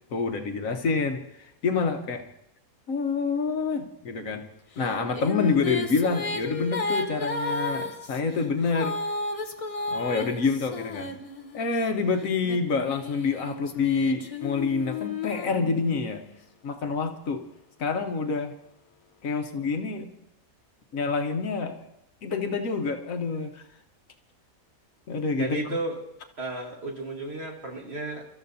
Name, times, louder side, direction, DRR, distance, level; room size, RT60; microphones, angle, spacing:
voice 1, 0.1-2.2 2.9-4.5 4.8-9.0 9.9-11.1 11.5-16.2 16.6-17.4 17.8-18.5 19.2-20.1 20.9-21.8 22.2-23.6 25.1-25.8, left 4 dB, 70° left, 5 dB, 1.4 m, -27 dB
Female singing, 4.8-11.8 12.4-16.2, left 3 dB, 30° left, 0.7 m, -33 dB
voice 2, 25.4-26.0 26.4-28.3, right 2 dB, 45° right, 1 dB, 1.7 m, -33 dB
29.0 x 13.5 x 2.7 m, 0.78 s
omnidirectional pair, 1.5 m